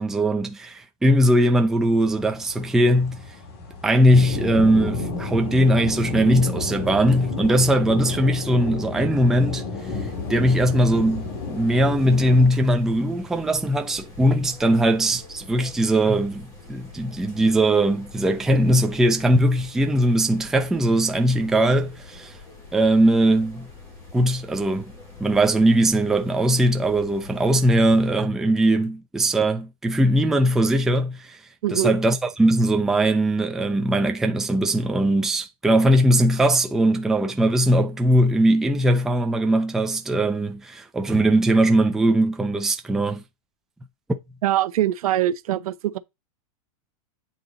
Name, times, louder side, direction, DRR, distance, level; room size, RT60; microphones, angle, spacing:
voice 1, 0.0-3.2 3.8-9.6 10.3-22.3 22.7-23.7 24.1-24.9 25.2-31.4 31.7-43.2, right 1 dB, ahead, 0.4 m, -20 dB
sound 1, 1.8-12.5, left 3 dB, 45° left, 2.3 m, -31 dB
sound 2, 9.8-28.1, left 3 dB, 15° left, 2.7 m, -45 dB
voice 2, 44.4-46.0, right 13 dB, 85° right, 0.8 m, -23 dB
8.5 x 4.0 x 3.9 m
supercardioid pair, 170°, 18 cm